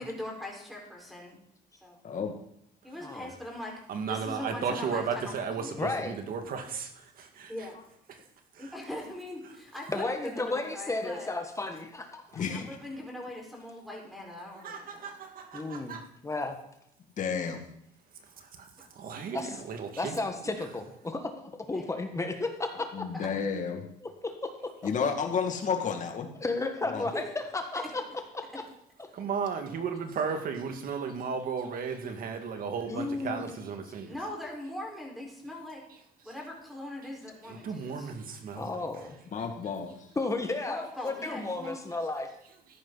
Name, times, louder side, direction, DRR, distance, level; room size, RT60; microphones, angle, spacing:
voice 1, 0.0-1.4 1.8-2.0 2.8-3.7 4.0-5.9 7.5-7.8 8.6-11.3 12.5-15.1 21.6-21.9 22.7-22.8 23.1-23.3 26.9-27.3 27.7-28.0 34.0-35.8 36.2-38.1 40.6-42.1, left 1 dB, ahead, -2 dB, 4.9 m, -41 dB
voice 2, 2.0-2.3 12.3-12.7 17.2-17.6 22.9-23.9 24.8-26.3 26.8-27.1 39.3-39.9, left 6 dB, 50° left, 4 dB, 2.2 m, -31 dB
voice 3, 3.9-7.5 8.6-8.7 14.6-16.1 18.6-20.2 29.1-34.1 37.5-38.7, right 6 dB, 60° right, 6 dB, 2.1 m, -35 dB
voice 4, 5.8-6.2 9.9-12.4 15.5-16.6 19.3-19.6 20.0-23.1 24.0-24.7 26.4-27.3 27.5-28.0 28.3-28.6 29.0-29.1 32.9-33.5 38.5-39.1 40.1-42.3, left 3 dB, 15° left, 5 dB, 1.6 m, -33 dB
14.0 x 10.5 x 4.1 m, 0.75 s
cardioid pair, 110°, 17 cm